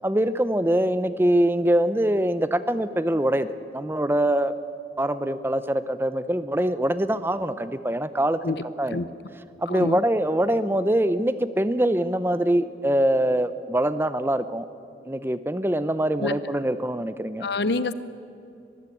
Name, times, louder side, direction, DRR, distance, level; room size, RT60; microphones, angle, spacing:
voice 1, 0.0-4.5 5.0-9.0 9.6-14.7 15.1-17.5, right 1 dB, 15° right, 13 dB, 0.6 m, -24 dB
voice 2, 9.7-10.0 16.2-16.4 17.4-17.9, left 3 dB, 75° left, 14 dB, 0.8 m, -26 dB
22.5 x 15.0 x 8.5 m, 2.6 s
head